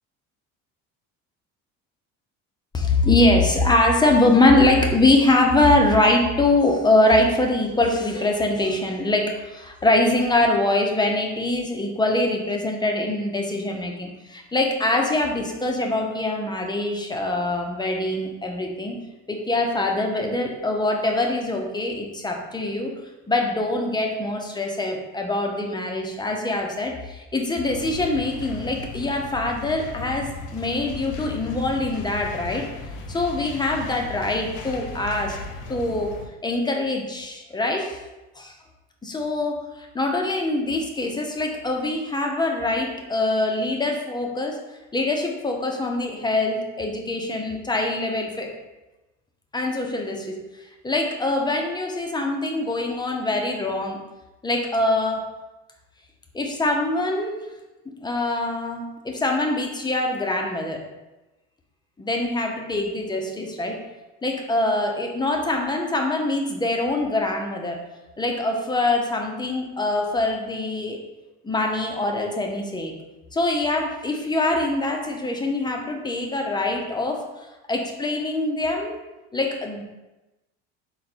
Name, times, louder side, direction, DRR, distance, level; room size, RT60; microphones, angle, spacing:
voice 1, 2.7-19.0 19.3-22.9 23.3-32.6 33.1-35.4 35.7-36.1 36.4-38.0 38.4-38.5 39.0-44.6 44.9-48.5 49.5-50.5 50.8-54.0 54.4-55.2 56.3-57.5 57.9-60.8 62.0-63.8 64.2-67.8 68.2-71.0 71.4-72.9 73.3-77.2 77.7-79.0 79.3-79.8, left 2 dB, 15° left, 2 dB, 0.6 m, -23 dB
sound 1, 27.7-36.3, left 2 dB, 70° left, 0.6 m, -36 dB
3.9 x 2.3 x 4.0 m, 1.0 s
supercardioid pair, 95°, 31 cm